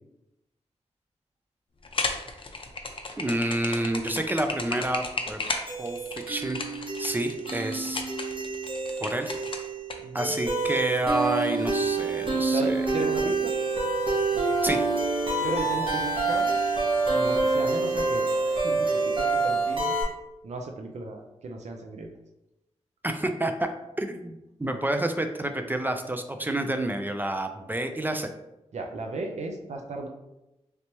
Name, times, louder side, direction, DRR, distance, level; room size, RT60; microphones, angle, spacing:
sound 1, 1.8-10.0, left 3 dB, 45° left, 0.5 m, -33 dB
voice 1, 3.2-5.4 5.8-6.6 7.0-8.0 9.0-9.3 10.1-12.8 14.6-14.9 23.0-23.7 24.0-28.3, right 1 dB, 15° right, 6 dB, 0.4 m, -29 dB
sound 2, 5.7-20.0, right 3 dB, 45° right, 1.0 m, -27 dB
voice 2, 10.0-10.3 12.5-13.5 15.4-16.5 17.1-20.0 20.4-22.1 28.7-30.1, right 2 dB, 70° right, 3 dB, 0.5 m, -35 dB
3.2 x 2.9 x 2.8 m, 0.91 s
cardioid pair, 60°, 12 cm